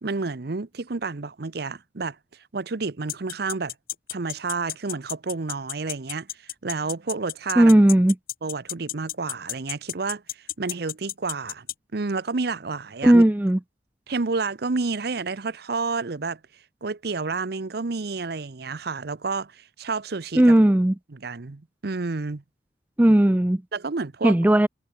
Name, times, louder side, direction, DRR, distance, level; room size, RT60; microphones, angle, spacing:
voice 1, 0.0-2.2 2.5-3.7 4.1-7.8 8.4-11.7 11.9-13.2 14.1-16.4 16.8-20.6 21.1-22.4 23.7-24.4, right 4 dB, 60° right, 0.8 m, -30 dB
sound 1, 3.1-11.7, left 14 dB, 55° left, 2.3 m, -31 dB
voice 2, 7.6-8.1 13.0-13.6 20.4-20.9 23.0-23.6 24.2-24.7, right 1 dB, 10° right, 0.4 m, -16 dB
head